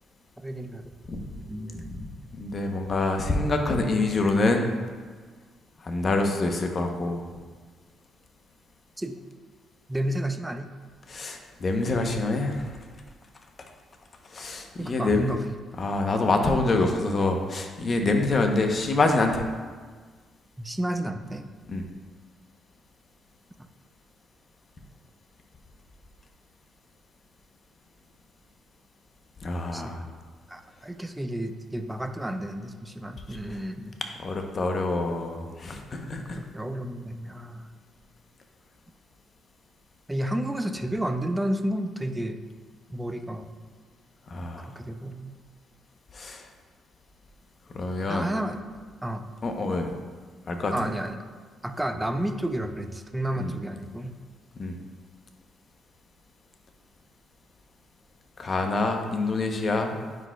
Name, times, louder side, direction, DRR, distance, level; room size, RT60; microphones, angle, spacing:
voice 1, 0.4-0.9 1.4-2.1 9.0-9.2 9.9-10.7 14.8-15.4 20.6-21.5 29.7-29.9 30.5-34.0 36.4-37.7 40.1-42.4 42.9-43.5 44.6-45.4 48.1-48.6 49.0-49.3 50.7-51.2 51.6-54.2, right 1 dB, 10° right, 7 dB, 0.4 m, -31 dB
voice 2, 1.1-1.4 2.4-4.7 5.8-7.3 11.1-12.8 14.3-15.4 15.8-19.4 21.7-21.8 29.4-30.1 34.2-36.4 44.3-44.7 46.1-46.5 47.7-48.3 49.4-49.9 50.5-50.7 53.4-53.5 54.6-54.7 58.4-60.0, left 2 dB, 40° left, 4 dB, 0.8 m, -26 dB
9.3 x 5.0 x 2.3 m, 1.5 s
cardioid pair, 90°, 0 cm